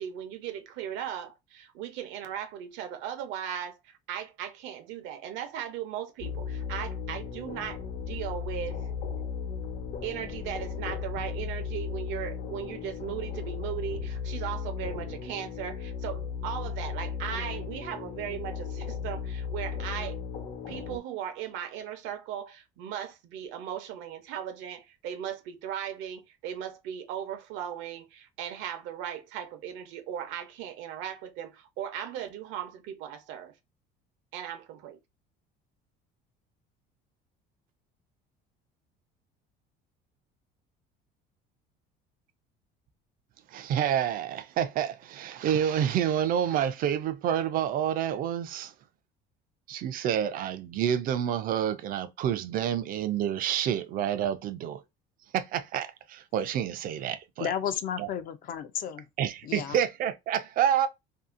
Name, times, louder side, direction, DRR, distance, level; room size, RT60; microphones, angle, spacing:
voice 1, 0.0-8.9 10.0-20.2 20.7-33.5 34.3-35.0, right 9 dB, 75° right, 0.7 m, -37 dB
sound 1, 6.2-21.0, left 6 dB, 65° left, 1.0 m, -36 dB
voice 2, 43.5-48.7 49.7-54.8 55.3-57.5 58.0-58.1 59.2-60.9, right 9 dB, 45° right, 0.4 m, -28 dB
voice 3, 57.4-59.0 59.4-59.8, left 9 dB, 45° left, 0.4 m, -32 dB
2.7 x 2.7 x 2.4 m
cardioid pair, 140°, 20 cm